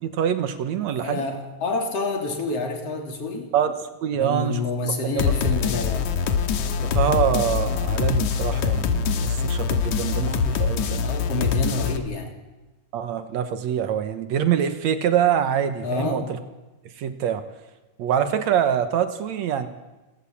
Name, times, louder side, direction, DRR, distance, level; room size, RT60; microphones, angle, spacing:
voice 1, 0.0-1.3 3.5-4.6 5.2-5.3 6.7-11.1 12.9-16.2 17.0-17.4 18.0-19.7, right 9 dB, 70° right, 9 dB, 2.4 m, -25 dB
voice 2, 1.0-3.5 4.1-6.1 11.0-12.3 15.8-16.3, left 3 dB, 55° left, 2 dB, 3.8 m, -28 dB
sound 1, 5.2-12.0, left 6 dB, 80° left, 2.6 m, -24 dB
28.5 x 17.0 x 7.3 m, 1.1 s
omnidirectional pair, 3.3 m